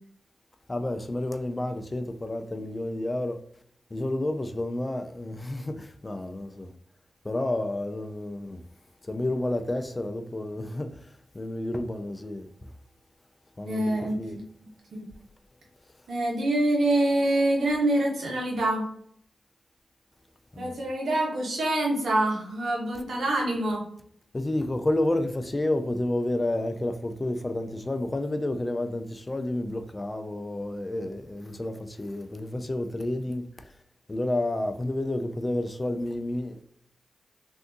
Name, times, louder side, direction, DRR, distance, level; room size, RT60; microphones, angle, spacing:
voice 1, 0.7-3.4 3.9-6.7 7.2-8.6 9.0-12.7 13.6-14.4 20.5-20.8 24.3-33.8 34.1-36.6, left 1 dB, 30° left, 0.4 m, -30 dB
voice 2, 13.7-14.2 16.1-18.9 20.6-23.8, right 1 dB, 80° right, 1.0 m, -25 dB
3.3 x 2.7 x 2.6 m
supercardioid pair, 40°, 0 cm